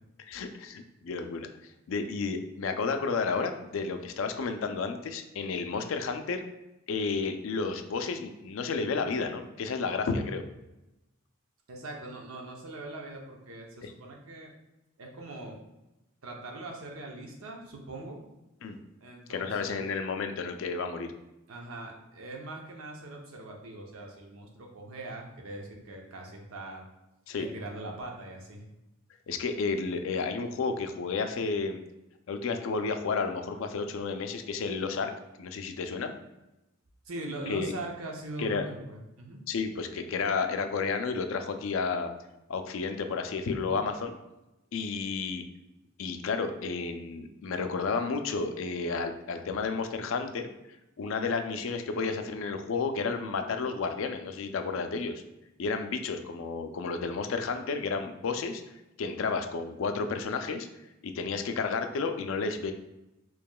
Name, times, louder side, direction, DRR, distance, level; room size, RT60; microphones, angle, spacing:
voice 1, 0.2-6.4 6.9-10.4 13.8-13.9 18.6-18.8 19.3-21.1 27.3-27.5 29.3-31.8 32.3-35.1 35.4-36.1 37.5-37.7 38.4-38.7 39.5-42.1 42.5-44.2 44.7-45.4 46.0-50.5 51.0-55.2 55.6-58.6 59.0-60.7 61.0-62.7, left 4 dB, 70° left, 7 dB, 0.4 m, -31 dB
voice 2, 11.7-14.5 15.0-15.6 16.2-18.2 19.0-19.9 21.5-26.9 27.3-28.6 37.0-39.4, right 2 dB, 85° right, 1 dB, 0.7 m, -41 dB
4.6 x 2.9 x 2.2 m, 0.95 s
head